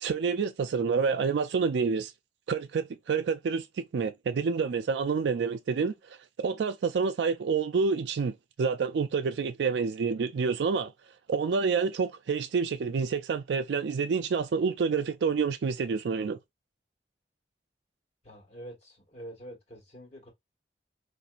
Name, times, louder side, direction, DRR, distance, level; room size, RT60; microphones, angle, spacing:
voice 1, 0.0-2.1 2.5-10.9 11.3-16.4, right 5 dB, 85° right, 0.4 m, -28 dB
voice 2, 18.2-20.3, right 1 dB, 40° left, 1.4 m, -46 dB
4.1 x 2.6 x 2.4 m
head